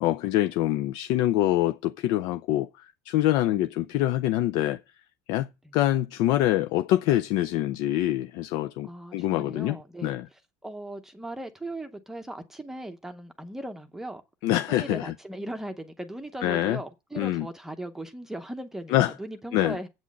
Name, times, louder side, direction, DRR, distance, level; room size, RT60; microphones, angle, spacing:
voice 1, 0.0-4.8 5.3-9.8 10.0-10.2 14.4-15.1 16.4-16.8 17.2-17.5 18.9-19.1 19.5-19.8, left 14 dB, 65° left, 0.4 m, -25 dB
voice 2, 8.8-14.2 14.7-19.9, right 1 dB, 5° right, 0.7 m, -38 dB
8.3 x 6.2 x 7.4 m
cardioid pair, 145°, 8 cm